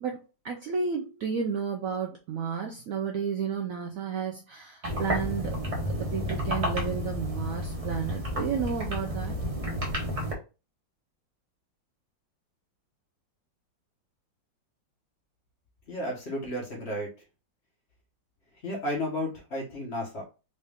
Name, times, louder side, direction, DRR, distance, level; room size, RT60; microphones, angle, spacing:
voice 1, 0.0-9.3, right 6 dB, 85° right, 3 dB, 0.7 m, -32 dB
sound 1, 4.8-10.3, equal, 30° right, 0.6 m, -31 dB
voice 2, 15.9-17.1 18.6-20.2, left 1 dB, 40° left, -1 dB, 1.2 m, -33 dB
4.0 x 2.5 x 3.5 m, 0.31 s
omnidirectional pair, 2.0 m